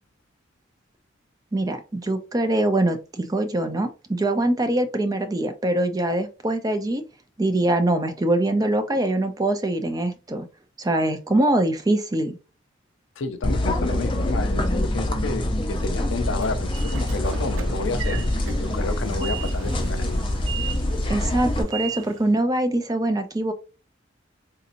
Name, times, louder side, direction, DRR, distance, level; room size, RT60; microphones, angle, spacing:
voice 1, 1.5-7.0 7.4-10.5 10.8-12.4 21.1-23.5, right 1 dB, 20° right, 0.5 m, -23 dB
voice 2, 13.2-20.2, left 3 dB, 75° left, 0.5 m, -31 dB
sound 1, 13.4-21.6, left 1 dB, 25° left, 0.6 m, -25 dB
Train / Sliding door, 15.9-22.4, right 7 dB, 85° right, 0.5 m, -37 dB
3.9 x 2.8 x 2.5 m
head